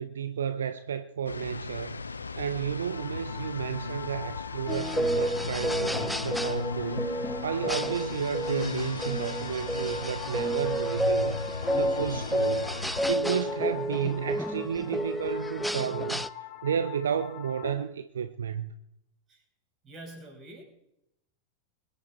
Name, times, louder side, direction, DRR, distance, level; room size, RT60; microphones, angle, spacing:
voice 1, 0.0-7.1 7.4-18.7, right 8 dB, 65° right, 0.7 m, -32 dB
sound 1, 1.3-13.1, left 4 dB, 75° left, 0.7 m, -37 dB
sound 2, 2.7-17.7, left 10 dB, 45° left, 3.4 m, -43 dB
sound 3, 4.7-16.3, equal, ahead, 0.5 m, -31 dB
voice 2, 19.8-20.6, right 1 dB, 25° right, 5.4 m, -45 dB
21.5 x 10.0 x 4.3 m
figure-of-eight pair, 90°, 0 cm